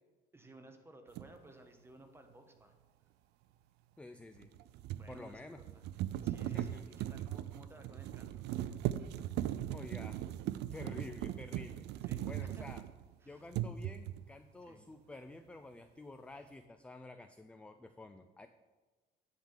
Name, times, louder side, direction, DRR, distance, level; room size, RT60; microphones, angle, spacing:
voice 1, 0.3-2.7 4.9-5.8 6.2-8.5 12.0-12.6 13.2-13.4 14.7-14.8, right 2 dB, 15° right, 5 dB, 1.2 m, -57 dB
sound 1, 1.1-1.3 4.4-13.1 13.5-14.3, right 12 dB, 80° right, 0.4 m, -39 dB
voice 2, 4.0-4.5 5.1-5.6 6.5-7.0 9.7-10.2 10.7-11.9 12.3-12.8 13.3-18.5, left 2 dB, 5° left, 8 dB, 0.4 m, -50 dB
10.5 x 3.7 x 7.3 m, 1.3 s
cardioid pair, 110°, 17 cm